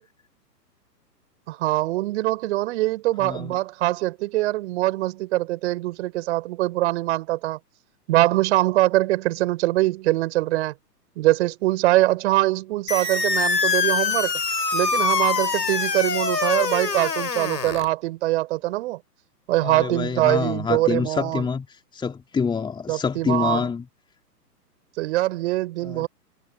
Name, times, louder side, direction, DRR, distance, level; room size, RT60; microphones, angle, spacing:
voice 1, 1.5-7.6 8.1-10.7 11.2-14.3 14.7-19.0 19.5-21.4 22.9-23.6 25.0-26.1, right 17 dB, 45° right, 4.9 m, -23 dB
voice 2, 3.2-3.5 19.6-21.7 21.9-23.8 25.8-26.1, left 5 dB, 10° left, 3.0 m, -26 dB
sound 1, 12.9-17.9, left 5 dB, 80° left, 7.1 m, -24 dB
figure-of-eight pair, 125°, 49 cm